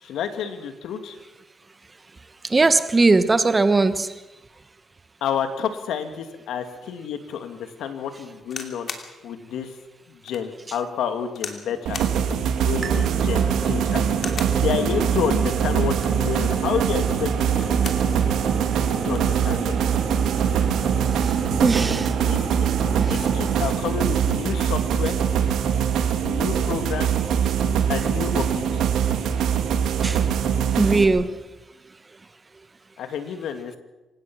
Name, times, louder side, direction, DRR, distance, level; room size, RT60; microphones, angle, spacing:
voice 1, 0.0-1.2 5.2-8.9 9.2-9.7 10.1-12.0 12.6-14.0 14.5-17.8 19.0-19.7 22.2-22.7 23.1-25.2 26.2-27.2 27.9-28.9 33.0-33.8, left 8 dB, 80° left, 2.5 m, -29 dB
voice 2, 2.5-4.1 21.6-22.1 23.0-23.3 30.0-30.2 30.7-31.4, right 3 dB, 25° right, 1.2 m, -19 dB
sound 1, 8.4-9.1 9.7-9.8 10.3-10.4 11.3-11.6 11.9-12.2 13.2-13.6 14.1-14.6 15.8-16.3 17.4-18.1 18.5-18.6 18.8-19.3 20.2-20.4, left 5 dB, 50° left, 2.8 m, -36 dB
sound 2, 11.9-31.1, right 8 dB, 85° right, 2.5 m, -23 dB
sound 3, 12.8-23.7, right 5 dB, 50° right, 3.8 m, -30 dB
27.0 x 17.0 x 6.3 m
cardioid pair, 90°, 0 cm